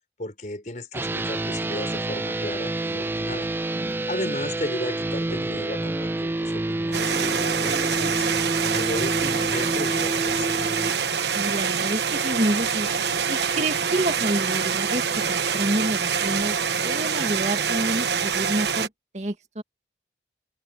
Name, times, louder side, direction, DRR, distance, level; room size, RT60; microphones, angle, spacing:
voice 1, 0.2-3.5 4.1-8.3 8.7-10.5, left 1 dB, 45° left, 4.6 m, -34 dB
sound 1, 0.9-10.9, right 2 dB, 10° right, 0.3 m, -28 dB
voice 2, 3.8-4.4 11.3-12.9 13.3-16.6 16.8-18.9 19.1-19.6, right 1 dB, 40° right, 2.1 m, -28 dB
sound 2, 6.9-18.9, right 6 dB, 75° right, 1.1 m, -25 dB
head